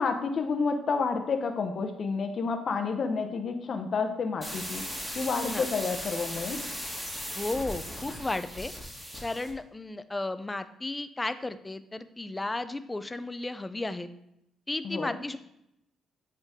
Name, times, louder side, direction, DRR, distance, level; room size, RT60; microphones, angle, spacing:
voice 1, 0.0-4.9 5.1-6.6 14.8-15.2, left 4 dB, 50° left, 6 dB, 0.7 m, -30 dB
sound 1, 4.4-9.5, equal, 5° right, 2.2 m, -37 dB
voice 2, 7.4-8.7 9.2-14.1 14.7-15.4, left 2 dB, 15° left, 11 dB, 0.5 m, -34 dB
8.0 x 3.8 x 3.6 m, 0.82 s
cardioid pair, 90°, 0 cm